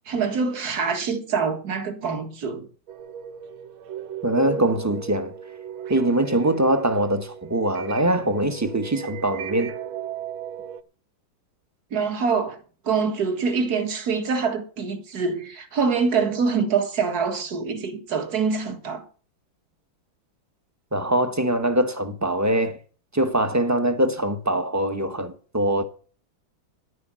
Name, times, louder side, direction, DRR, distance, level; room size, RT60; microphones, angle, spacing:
voice 1, 0.1-2.7 11.9-12.6 12.8-19.1, right 5 dB, 50° right, 2.0 m, -25 dB
sound 1, 2.9-10.8, right 8 dB, 85° right, 1.7 m, -36 dB
voice 2, 4.2-5.3 5.9-9.7 20.9-22.8 23.1-25.8, right 1 dB, 15° right, 0.7 m, -23 dB
11.0 x 9.5 x 7.5 m
omnidirectional pair, 2.2 m